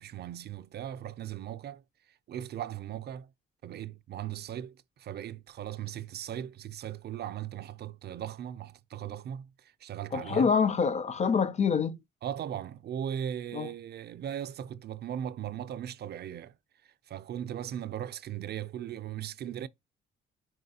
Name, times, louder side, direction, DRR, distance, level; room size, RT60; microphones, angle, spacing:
voice 1, 0.0-3.3 3.6-10.5 12.2-16.5 16.8-19.7, right 10 dB, 55° right, 0.4 m, -38 dB
voice 2, 10.1-12.0 13.5-13.7, left 6 dB, 35° left, 0.4 m, -26 dB
4.7 x 3.1 x 2.8 m
cardioid pair, 90°, 20 cm